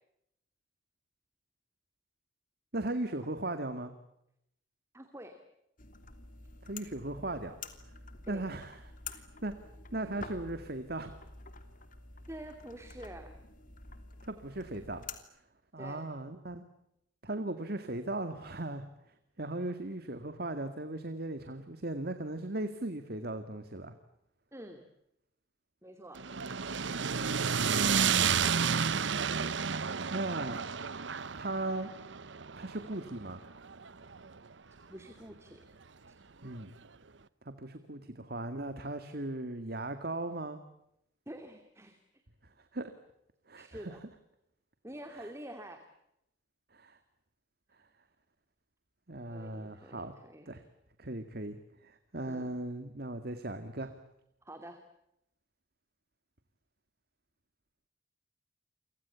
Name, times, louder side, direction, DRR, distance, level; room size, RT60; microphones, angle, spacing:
voice 1, 2.7-3.9 6.6-7.5 8.3-8.8 9.1-9.5 9.9-11.2 14.2-15.0 15.7-16.6 17.2-18.9 19.4-23.9 26.9-27.6 30.1-30.7 31.4-31.9 32.6-33.4 36.4-36.7 37.5-40.6 42.7-42.9 43.5-43.9 45.1-45.3 46.7-47.0 49.1-50.1 50.5-50.6 51.0-53.9, right 2 dB, 50° right, 9 dB, 2.0 m, -38 dB
voice 2, 4.9-5.4 8.3-8.5 12.3-13.3 15.8-16.1 24.5-24.8 25.8-26.2 34.9-35.6 36.1-36.2 41.3-42.0 43.6-44.0 44.8-45.8 49.3-50.6 52.3-52.5 54.4-54.8, right 1 dB, 15° right, 6 dB, 2.6 m, -47 dB
sound 1, 5.8-15.2, left 4 dB, 45° left, 3.0 m, -49 dB
sound 2, 26.2-34.4, right 6 dB, 70° right, 0.9 m, -31 dB
30.0 x 25.5 x 7.1 m, 0.80 s
head